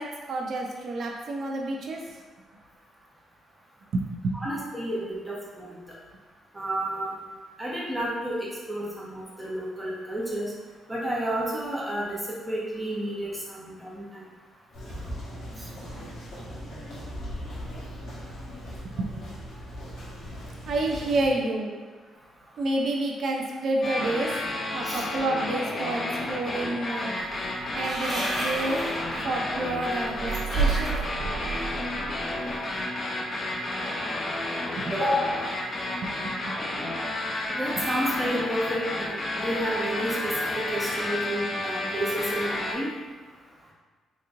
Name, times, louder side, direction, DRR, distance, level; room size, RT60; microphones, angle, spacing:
voice 1, 0.0-2.0 3.9-4.3 18.9-19.1 20.7-21.7 22.6-24.3 24.7-27.2 27.7-28.8 29.2-31.0 34.7-34.8 36.0-36.5, right 2 dB, 60° right, 0 dB, 0.6 m, -29 dB
voice 2, 4.3-5.8 6.5-7.1 7.6-8.4 8.7-10.5 10.9-12.2 12.5-14.2 24.8-25.0 34.9-35.4 37.5-40.3 40.7-42.9, equal, 15° right, -6 dB, 1.1 m, -30 dB
sound 1, 14.7-21.3, equal, 70° left, 1.3 m, -39 dB
sound 2, 23.8-42.7, left 1 dB, 45° left, 0.7 m, -31 dB
sound 3, 27.1-32.8, right 3 dB, 35° right, 1.1 m, -32 dB
4.0 x 2.9 x 2.6 m, 1.5 s
cardioid pair, 90°, 0 cm